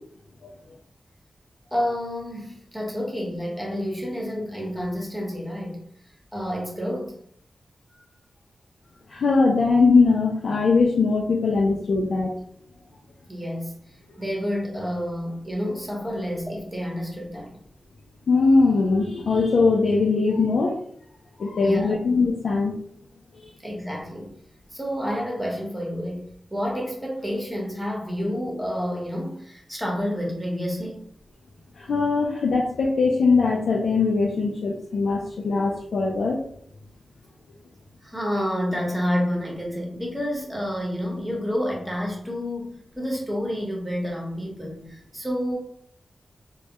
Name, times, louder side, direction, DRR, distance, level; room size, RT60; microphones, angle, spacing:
voice 1, 1.7-5.8 6.3-7.1 13.3-17.6 21.6-21.9 23.6-24.3 24.7-31.0 38.0-45.6, equal, 10° right, -2 dB, 0.9 m, -29 dB
voice 2, 9.1-12.3 18.3-20.8 21.4-22.8 23.4-23.5 31.8-36.4, left 4 dB, 80° left, -1 dB, 0.3 m, -21 dB
2.2 x 2.0 x 2.8 m, 0.67 s
cardioid pair, 60°, 0 cm